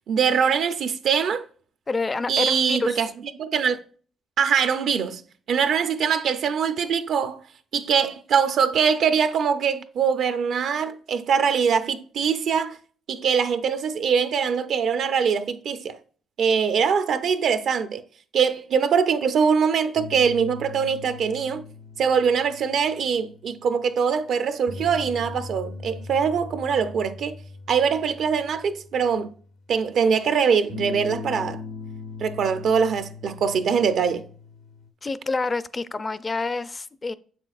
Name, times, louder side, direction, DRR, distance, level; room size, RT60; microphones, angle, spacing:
voice 1, 0.1-1.4 2.3-3.1 3.4-3.8 4.4-5.2 5.5-7.4 7.7-12.8 13.1-16.0 16.4-18.0 18.3-21.6 22.0-27.4 27.7-29.3 29.7-31.6 32.2-34.3, right 6 dB, 65° right, 0.6 m, -23 dB
voice 2, 1.9-3.0 35.0-37.1, left 3 dB, 30° left, 0.4 m, -27 dB
sound 1, 19.9-23.9 24.6-29.7 30.7-34.9, left 4 dB, 90° left, 0.8 m, -40 dB
7.0 x 6.0 x 2.4 m
cardioid pair, 90°, 0 cm